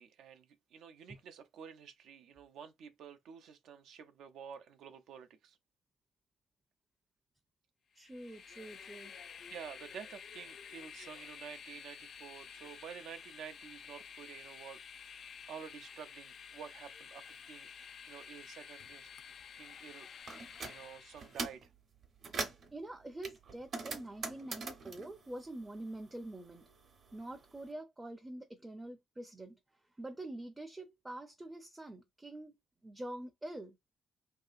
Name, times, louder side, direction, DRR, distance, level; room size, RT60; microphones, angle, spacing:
voice 1, 0.0-5.6 9.5-17.7 18.1-19.1 19.5-20.1 20.7-21.7, right 7 dB, 80° right, 0.5 m, -50 dB
voice 2, 7.9-9.1 9.4-9.5 22.7-26.7 27.1-29.6 30.0-33.8, right 1 dB, 15° right, 0.5 m, -46 dB
Train, 8.0-21.4, left 7 dB, 50° left, 0.4 m, -51 dB
sound 1, 20.3-20.8 21.2-21.7 22.0-22.7 23.2-26.2 26.4-27.6, right 4 dB, 50° right, 0.8 m, -42 dB
3.1 x 2.7 x 2.4 m
cardioid pair, 125°, 0 cm